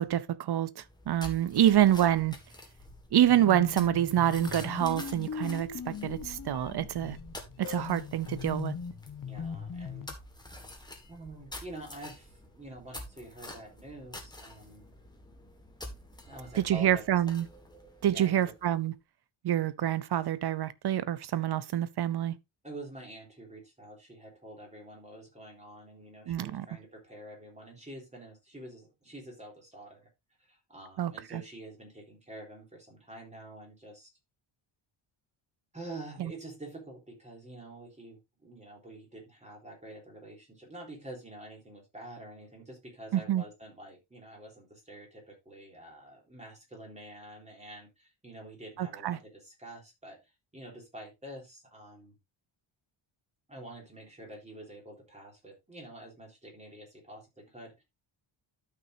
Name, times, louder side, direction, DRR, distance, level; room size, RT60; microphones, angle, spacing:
voice 1, 0.0-2.4 3.1-7.2 7.6-8.7 16.6-17.5 18.0-18.9 19.4-22.4 26.3-26.7 31.0-31.4 43.1-43.4 48.8-49.2, right 11 dB, 50° right, 0.7 m, -27 dB
sound 1, 0.8-18.8, left 1 dB, 10° left, 1.8 m, -48 dB
voice 2, 1.5-1.9 9.2-10.1 11.1-14.9 16.2-17.0 18.0-18.5 22.6-30.1 30.4-34.1 35.7-52.2 53.5-57.8, right 1 dB, 15° right, 3.8 m, -47 dB
sound 2, 3.3-10.1, left 6 dB, 40° left, 1.2 m, -40 dB
13.0 x 6.0 x 2.7 m
wide cardioid pair, 140°, 50 cm